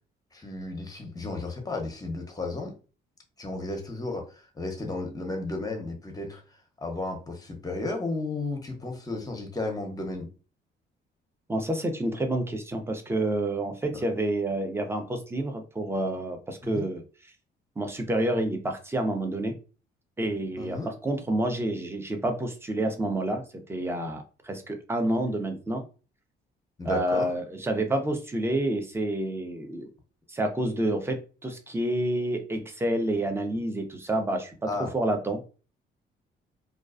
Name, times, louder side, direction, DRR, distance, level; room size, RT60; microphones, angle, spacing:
voice 1, 0.3-2.8 3.4-6.4 6.8-10.3 13.9-14.0 16.6-16.9 20.6-20.9 26.8-27.3 34.7-34.9, left 2 dB, 20° left, 2 dB, 0.7 m, -33 dB
voice 2, 11.5-17.0 17.8-19.6 20.2-23.4 23.7-25.8 26.8-29.9 30.3-34.6 34.9-35.4, right 1 dB, 10° right, 5 dB, 0.5 m, -28 dB
2.3 x 2.2 x 2.4 m, 0.35 s
cardioid pair, 90°, 20 cm